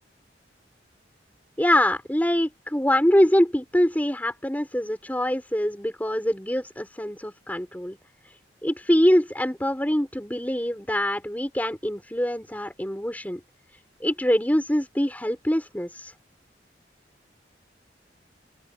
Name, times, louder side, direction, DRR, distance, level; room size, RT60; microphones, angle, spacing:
voice 1, 1.6-8.0 8.6-13.4 14.0-16.1, equal, 10° left, 4.5 m, -24 dB
open air
head